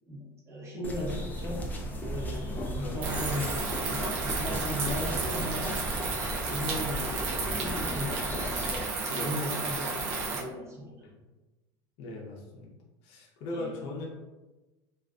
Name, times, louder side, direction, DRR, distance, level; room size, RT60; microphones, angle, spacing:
voice 1, 0.1-1.7 2.0-6.0 6.4-8.5 9.0-11.1 13.5-13.7, equal, 20° right, -4 dB, 0.8 m, -37 dB
sound 1, 0.8-8.8, equal, 15° left, 0.3 m, -36 dB
voice 2, 2.5-3.2 9.1-9.4 11.0-11.2 12.0-12.7 13.0-14.1, left 2 dB, 60° left, -2 dB, 0.6 m, -40 dB
sound 2, 3.0-10.4, right 4 dB, 55° right, 0.5 m, -32 dB
2.4 x 2.2 x 2.4 m, 1.1 s
supercardioid pair, 140°, 13 cm